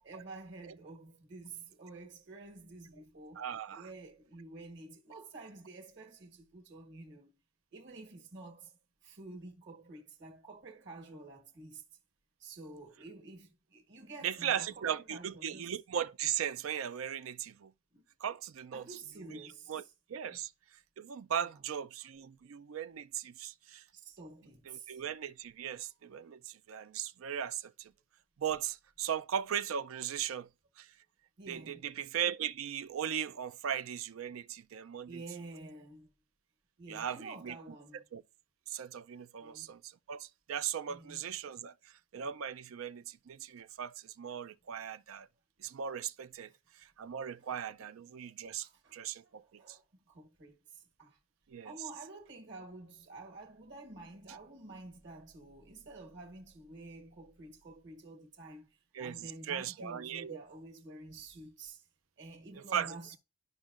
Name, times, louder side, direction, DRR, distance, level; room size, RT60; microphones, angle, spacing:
voice 1, 0.0-3.5 3.7-7.3 7.7-8.7 9.0-11.8 12.4-15.7 17.9-18.0 18.7-19.9 20.3-20.4 21.4-21.5 23.9-25.0 31.4-31.9 35.1-36.1 36.8-38.1 39.4-39.7 40.9-41.2 46.5-46.6 47.4-47.5 47.8-47.9 48.4-51.2 51.6-58.7 59.0-61.9 62.2-63.2, right 2 dB, 60° right, 1.5 m, -50 dB
voice 2, 3.4-3.9 14.2-17.7 18.2-18.8 19.3-19.4 19.7-19.8 20.1-20.5 21.0-23.8 24.7-27.9 28.4-30.5 30.8-30.9 31.5-35.2 36.9-37.6 38.1-38.2 38.7-45.3 45.6-49.8 51.5-51.7 58.9-60.4 62.6-63.0, right 9 dB, 85° right, 0.4 m, -38 dB
12.0 x 5.3 x 2.4 m
head